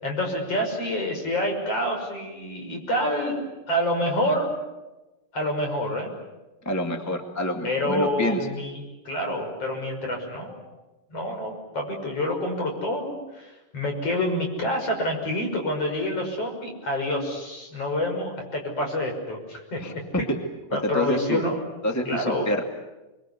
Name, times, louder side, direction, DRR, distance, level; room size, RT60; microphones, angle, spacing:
voice 1, 0.0-4.5 5.3-6.1 7.6-10.6 11.1-19.8 20.7-21.6 22.1-22.5, left 1 dB, 45° left, 2 dB, 7.0 m, -27 dB
voice 2, 6.6-8.4 19.8-20.4 20.7-21.4 21.8-22.6, left 1 dB, 5° left, 4 dB, 1.5 m, -27 dB
30.0 x 23.5 x 8.4 m, 1.1 s
omnidirectional pair, 3.9 m